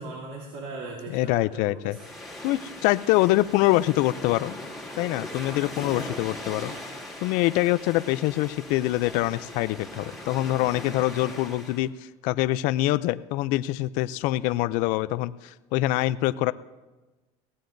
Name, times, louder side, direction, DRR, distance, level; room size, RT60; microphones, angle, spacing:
voice 1, 0.0-2.1, right 2 dB, 70° right, -2 dB, 2.9 m, -39 dB
voice 2, 1.1-2.0 2.4-4.6 5.0-6.7 7.2-11.9 12.2-16.5, left 17 dB, 65° left, 14 dB, 0.4 m, -24 dB
sound 1, 1.9-11.9, left 1 dB, ahead, 2.9 m, -40 dB
22.0 x 17.0 x 2.6 m, 1.2 s
supercardioid pair, 115°, 15 cm